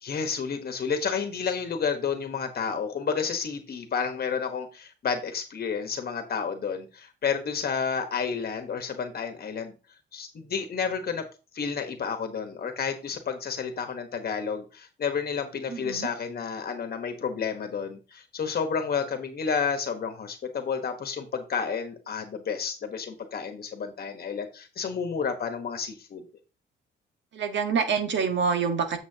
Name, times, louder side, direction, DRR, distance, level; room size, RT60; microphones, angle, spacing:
voice 1, 0.0-9.7 10.1-11.2 11.5-26.2, left 6 dB, 50° left, 6 dB, 1.2 m, -31 dB
voice 2, 15.7-16.1 27.3-29.0, right 6 dB, 65° right, 7 dB, 1.6 m, -26 dB
8.7 x 7.1 x 2.8 m, 0.32 s
cardioid pair, 90°, 20 cm